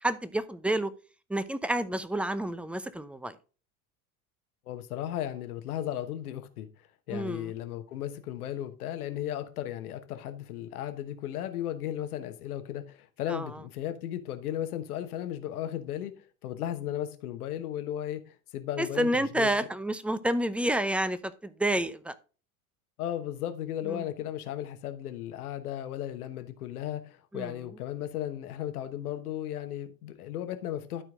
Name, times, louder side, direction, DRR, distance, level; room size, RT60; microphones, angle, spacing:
voice 1, 0.0-0.9 1.3-3.4 7.1-7.5 13.3-13.6 18.8-22.2 23.8-24.1 27.3-27.6, right 1 dB, 5° right, 0.7 m, -29 dB
voice 2, 4.7-6.7 7.1-16.1 16.4-19.5 23.0-31.0, left 11 dB, 75° left, 1.2 m, -35 dB
12.5 x 4.5 x 3.7 m
hypercardioid pair, 75°, 45 cm